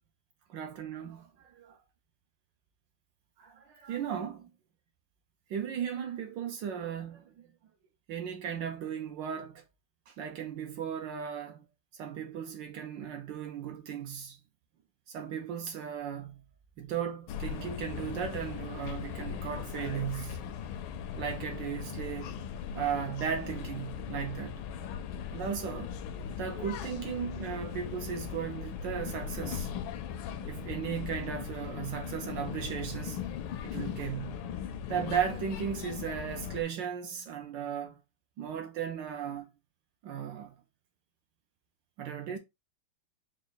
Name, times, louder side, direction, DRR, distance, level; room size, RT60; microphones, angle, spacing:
voice 1, 0.5-1.8 3.4-4.5 5.5-7.5 8.1-9.6 10.1-11.6 12.0-14.4 15.1-16.3 16.8-20.4 21.2-22.4 22.7-24.6 25.3-25.9 26.4-29.7 30.5-33.2 33.6-34.4 34.9-38.0 38.4-39.5 40.0-40.5 42.0-42.4, right 8 dB, 70° right, 1.2 m, -36 dB
sound 1, 17.3-36.6, left 8 dB, 75° left, 1.3 m, -39 dB
4.9 x 2.1 x 3.9 m
omnidirectional pair, 2.4 m